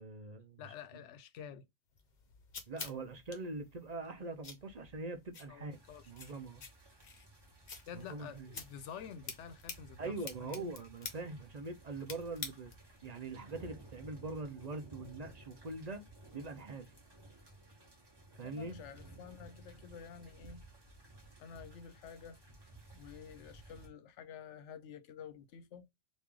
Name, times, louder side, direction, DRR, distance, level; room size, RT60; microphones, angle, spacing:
voice 1, 0.0-0.7 2.7-5.8 6.1-6.6 7.9-8.5 10.0-12.7 13.0-16.0 16.3-16.9 18.3-18.8, right 3 dB, 45° right, 0.6 m, -43 dB
voice 2, 0.6-1.7 5.5-6.1 7.9-10.1 10.4-10.7 18.4-20.6 21.4-22.4 22.9-25.9, left 7 dB, 80° left, 0.9 m, -49 dB
sound 1, 2.0-13.0, left 4 dB, 45° left, 0.8 m, -50 dB
sound 2, 5.7-23.9, right 2 dB, 20° right, 1.0 m, -57 dB
3.1 x 2.5 x 3.6 m
omnidirectional pair, 1.2 m